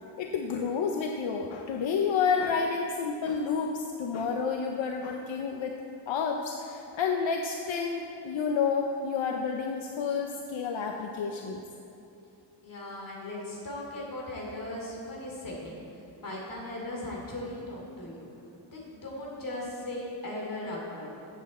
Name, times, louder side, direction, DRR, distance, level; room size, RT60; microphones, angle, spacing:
voice 1, 0.2-11.6, left 5 dB, 75° left, 3 dB, 0.8 m, -30 dB
voice 2, 12.6-18.3 18.7-21.1, left 1 dB, 45° left, -3 dB, 2.8 m, -38 dB
14.5 x 8.1 x 4.2 m, 2.7 s
wide cardioid pair, 180°, 46 cm